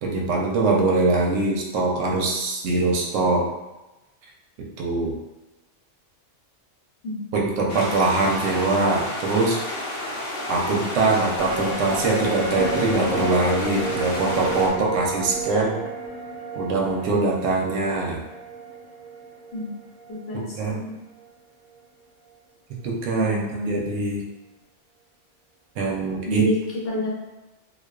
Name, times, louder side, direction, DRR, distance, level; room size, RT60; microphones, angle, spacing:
voice 1, 0.0-3.5 4.8-5.2 7.3-9.6 10.5-15.8 16.6-18.2 20.3-20.8 22.8-23.4 23.7-24.2 25.8-26.5, right 3 dB, 85° right, -1 dB, 0.9 m, -23 dB
sound 1, 7.7-14.7, left 1 dB, 85° left, 1.0 m, -31 dB
sound 2, 11.4-20.9 21.2-21.3, right 2 dB, 55° right, 0.7 m, -32 dB
voice 2, 20.1-20.9 23.2-23.8 26.2-27.1, left 1 dB, 55° left, -5 dB, 0.9 m, -29 dB
2.3 x 2.3 x 2.3 m, 1.0 s
omnidirectional pair, 1.2 m